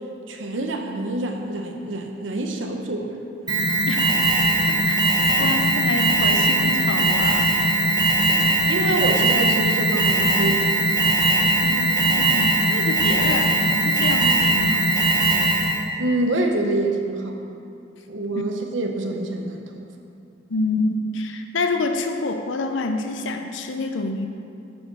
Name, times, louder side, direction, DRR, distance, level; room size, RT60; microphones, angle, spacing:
voice 1, 0.3-3.1 8.6-11.0 16.0-17.4 18.1-19.9, right 2 dB, 80° right, 3 dB, 0.9 m, -26 dB
Alarm, 3.5-15.9, right 2 dB, 25° right, 0.9 m, -20 dB
voice 2, 4.7-5.0 5.4-7.5 11.6-15.1 20.5-24.3, left 3 dB, 80° left, 5 dB, 0.6 m, -27 dB
8.4 x 5.3 x 6.0 m, 2.5 s
head